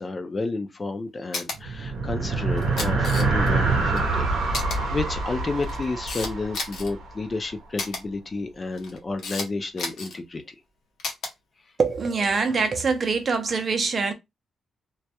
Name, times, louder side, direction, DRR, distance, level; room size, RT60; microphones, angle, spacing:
voice 1, 0.0-4.7 4.9-10.4, left 3 dB, 25° left, 0.4 m, -31 dB
Camera, 1.3-1.6 2.6-3.5 4.0-4.1 4.5-4.8 5.5-6.9 7.8-8.0 8.7-9.5 9.8-10.2 11.0-11.3 12.2-12.5, left 3 dB, 75° left, 0.7 m, -32 dB
sound 1, 1.5-7.3, right 3 dB, 85° right, 0.6 m, -25 dB
voice 2, 11.8-14.1, right 4 dB, 40° right, 0.5 m, -24 dB
2.2 x 2.0 x 2.7 m
wide cardioid pair, 155°, 0 cm